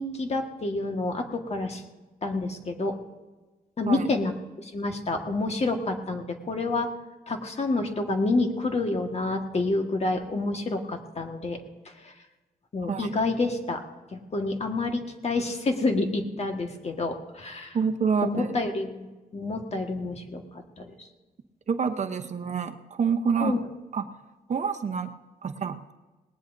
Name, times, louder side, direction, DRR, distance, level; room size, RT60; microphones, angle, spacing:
voice 1, 0.0-1.8 2.2-3.0 3.8-4.3 4.6-6.9 7.3-11.6 12.7-13.8 14.1-17.8 18.2-19.1 19.3-20.4 20.8-20.9 23.4-23.6, left 2 dB, 45° left, 4 dB, 1.6 m, -28 dB
voice 2, 12.8-13.1 17.7-18.6 21.7-23.6 23.9-24.1 24.5-25.1 25.4-25.9, right 6 dB, 50° right, 7 dB, 0.8 m, -27 dB
19.0 x 19.0 x 2.7 m, 1.2 s
wide cardioid pair, 115°, 16 cm